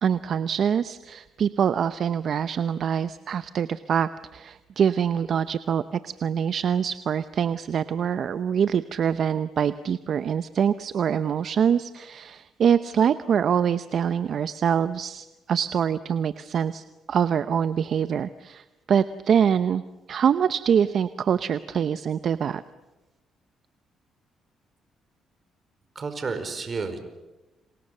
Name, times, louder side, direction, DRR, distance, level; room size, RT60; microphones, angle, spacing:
voice 1, 0.0-19.8 20.1-22.6, right 8 dB, 60° right, 12 dB, 0.8 m, -24 dB
voice 2, 25.9-27.0, right 4 dB, 40° right, 9 dB, 4.8 m, -31 dB
30.0 x 27.5 x 6.7 m, 1.1 s
cardioid pair, 90°, 0 cm